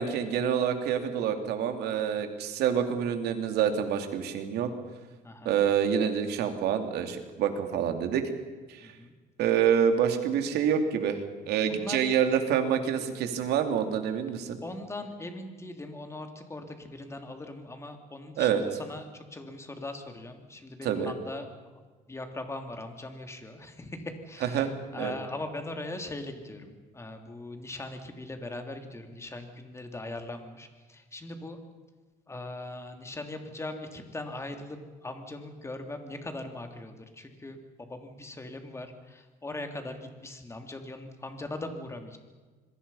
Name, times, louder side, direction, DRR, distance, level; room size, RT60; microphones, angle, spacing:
voice 1, 0.0-4.7 5.4-8.2 8.7-8.9 9.4-14.6 18.4-18.6 20.8-21.1 24.4-24.7 25.0-25.1, right 8 dB, 85° right, 6 dB, 2.9 m, -27 dB
voice 2, 5.2-5.6 8.8-9.1 11.7-12.0 14.6-21.5 22.1-24.7 24.9-31.6 32.3-42.2, left 2 dB, 15° left, 5 dB, 3.0 m, -40 dB
26.5 x 22.5 x 5.7 m, 1.4 s
cardioid pair, 125°, 16 cm